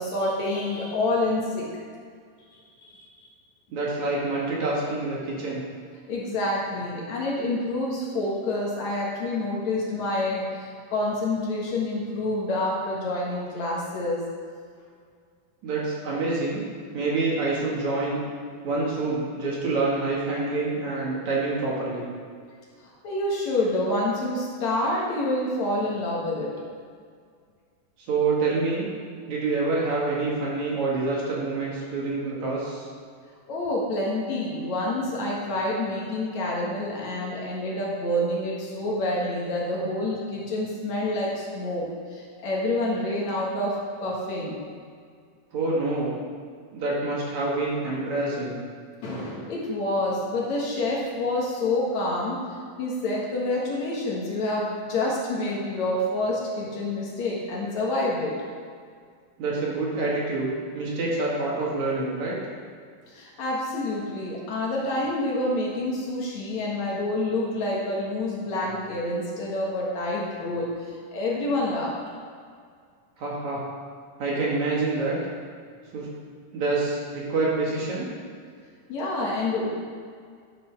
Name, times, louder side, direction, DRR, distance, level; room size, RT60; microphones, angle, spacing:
voice 1, 0.0-1.6 2.8-2.9 6.1-14.3 23.0-26.5 33.5-44.6 49.0-52.4 52.8-58.3 63.1-71.9 78.9-79.7, left 1 dB, 60° left, -4 dB, 2.7 m, -27 dB
voice 2, 3.7-5.6 15.6-16.6 16.9-18.2 18.6-22.0 28.1-28.9 29.3-32.9 45.5-46.1 46.7-48.6 59.4-62.4 73.2-73.6 74.2-75.2 75.9-76.1 76.5-78.1, right 3 dB, 60° right, -5 dB, 3.1 m, -27 dB
12.0 x 6.0 x 6.0 m, 2.1 s
omnidirectional pair, 3.9 m